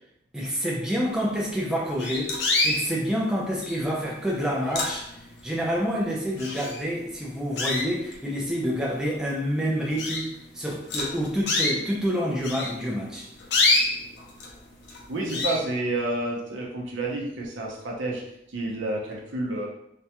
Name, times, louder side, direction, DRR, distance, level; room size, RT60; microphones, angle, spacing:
voice 1, 0.3-2.3 2.6-5.1 5.4-10.3 10.5-13.3, equal, 5° right, -4 dB, 0.3 m, -28 dB
sound 1, 1.3-1.4 2.0-2.8 3.6-4.0 4.4-5.4 5.8-5.9 6.4-7.0 7.6-8.3 8.9-9.0 9.4-9.5 10.0-10.3 10.9-11.8 12.4-14.5 14.8-15.0 15.3-15.6, left 2 dB, 65° left, 0.5 m, -26 dB
voice 2, 15.1-18.2 18.5-19.7, right 2 dB, 85° right, -2 dB, 0.6 m, -29 dB
2.3 x 2.1 x 2.8 m, 0.78 s
head